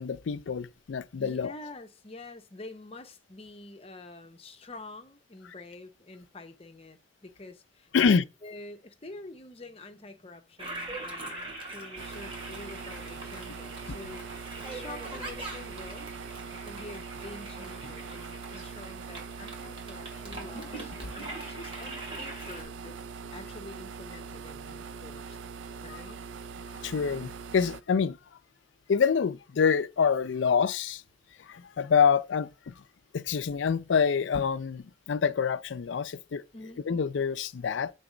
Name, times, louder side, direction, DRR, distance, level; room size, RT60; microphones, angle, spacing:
voice 1, 0.0-1.5 7.9-8.2 21.0-21.1 25.9-26.0 26.8-28.2 28.9-31.0 31.4-32.8 33.1-36.4 36.9-37.9, left 6 dB, 85° left, 0.4 m, -26 dB
voice 2, 1.2-8.1 8.4-14.3 14.7-16.3 16.6-23.0 23.3-25.4 25.8-26.2 36.5-36.8, left 2 dB, 30° left, 0.8 m, -47 dB
Toilet flush, 10.6-22.6, right 2 dB, 30° right, 2.4 m, -42 dB
sound 1, 12.0-27.8, right 5 dB, 85° right, 0.4 m, -42 dB
6.9 x 4.0 x 5.0 m
head